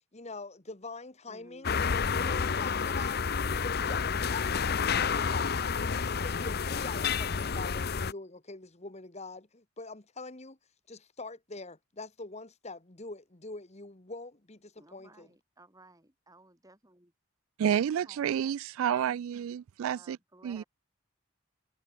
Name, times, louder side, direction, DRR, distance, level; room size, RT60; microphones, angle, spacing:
voice 1, 0.1-1.8 2.1-3.2 3.5-4.0 4.3-10.6 10.9-15.3, left 3 dB, 30° left, 1.5 m, -44 dB
voice 2, 1.3-1.7 2.6-3.0 14.8-17.1 18.0-18.5 18.9-19.2 19.8-20.6, right 2 dB, 15° right, 4.0 m, -55 dB
sound 1, 1.6-8.1, left 6 dB, 50° left, 0.7 m, -30 dB
voice 3, 17.6-20.2 20.4-20.6, right 9 dB, 75° right, 0.3 m, -30 dB
head